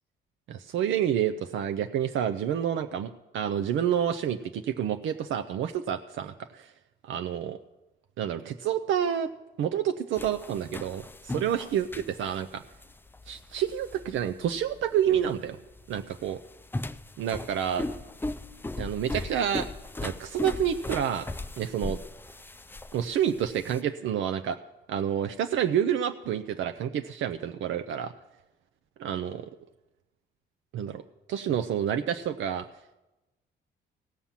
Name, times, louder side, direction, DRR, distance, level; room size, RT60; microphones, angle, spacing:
voice 1, 0.5-6.7 7.0-7.6 8.2-9.3 9.6-11.9 12.2-12.6 13.3-15.6 15.9-16.4 17.2-17.9 18.8-19.7 20.0-21.3 21.6-22.0 22.9-24.6 24.9-28.1 29.0-29.5 30.7-31.0 31.3-32.7, right 9 dB, 75° right, 7 dB, 0.6 m, -28 dB
sound 1, 10.1-23.8, left 2 dB, 10° left, 0.5 m, -38 dB
17.0 x 5.7 x 7.3 m, 1.0 s
cardioid pair, 90°, 20 cm